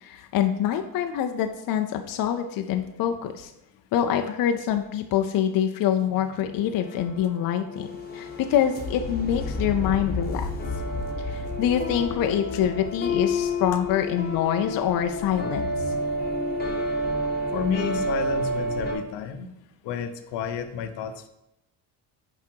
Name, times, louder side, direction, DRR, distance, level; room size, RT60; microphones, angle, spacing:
voice 1, 0.0-3.5 3.9-7.9 8.1-10.5 11.2-15.6, left 9 dB, 50° left, 6 dB, 0.5 m, -25 dB
sound 1, 6.1-18.9, left 1 dB, 20° left, 1.4 m, -30 dB
voice 2, 17.5-19.5 19.8-21.3, left 7 dB, 70° left, 8 dB, 0.8 m, -30 dB
5.9 x 5.0 x 4.6 m, 0.86 s
cardioid pair, 120°, 44 cm